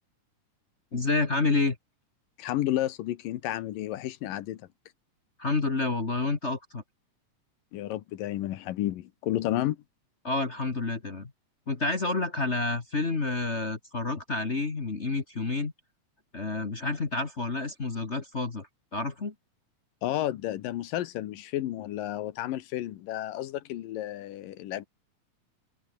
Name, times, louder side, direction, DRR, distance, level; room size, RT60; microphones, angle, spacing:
voice 1, 0.9-1.8 5.4-6.8 10.2-11.3 11.7-15.7 16.3-18.7 18.9-19.3, left 3 dB, 30° left, 1.3 m, -29 dB
voice 2, 2.4-4.6 7.7-9.8 20.0-24.9, left 13 dB, 85° left, 2.9 m, -31 dB
omnidirectional pair, 3.8 m